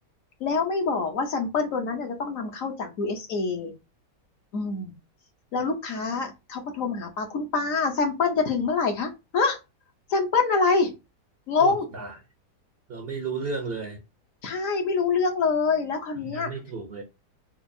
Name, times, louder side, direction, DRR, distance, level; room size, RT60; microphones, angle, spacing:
voice 1, 0.4-3.7 4.5-4.9 5.5-9.6 10.1-10.9 11.5-11.9 14.4-16.5, left 4 dB, 60° left, 1.0 m, -25 dB
voice 2, 11.6-12.1 12.9-14.0 16.3-17.0, right 4 dB, 60° right, 0.6 m, -33 dB
4.4 x 2.4 x 2.5 m
omnidirectional pair, 1.8 m